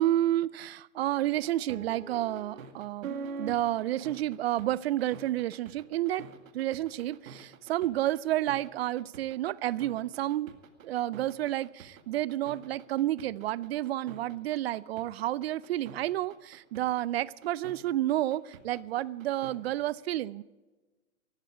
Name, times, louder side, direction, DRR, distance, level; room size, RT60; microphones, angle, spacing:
voice 1, 0.0-6.2 6.5-10.5 10.8-20.4, right 14 dB, 50° right, 21 dB, 0.5 m, -30 dB
sound 1, 1.0-19.7, right 5 dB, 80° right, 2.1 m, -45 dB
19.0 x 14.0 x 5.0 m, 1.3 s
hypercardioid pair, 135°, 40 cm